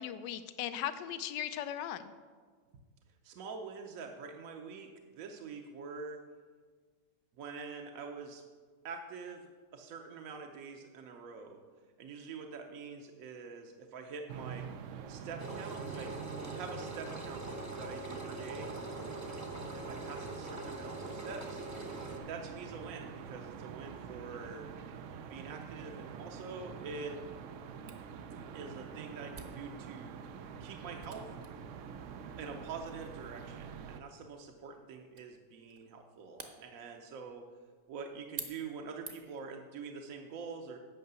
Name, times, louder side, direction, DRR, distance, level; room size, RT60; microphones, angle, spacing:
voice 1, 0.0-2.1, left 10 dB, 85° left, 12 dB, 1.2 m, -38 dB
voice 2, 3.2-6.2 7.4-8.4 8.8-11.6 12.0-14.7 15.1-16.1 16.5-17.5 17.7-18.7 19.7-21.6 22.3-24.7 25.3-27.2 28.5-30.2 30.6-31.3 32.4-37.5 37.9-40.8, right 5 dB, 60° right, 3 dB, 1.0 m, -45 dB
sound 1, 14.3-34.0, right 7 dB, 85° right, 0.6 m, -46 dB
Engine, 15.4-22.2, right 2 dB, 15° right, 0.6 m, -43 dB
Camera, 27.9-39.5, right 4 dB, 40° right, 0.9 m, -52 dB
9.4 x 5.6 x 6.8 m, 1.5 s
omnidirectional pair, 1.9 m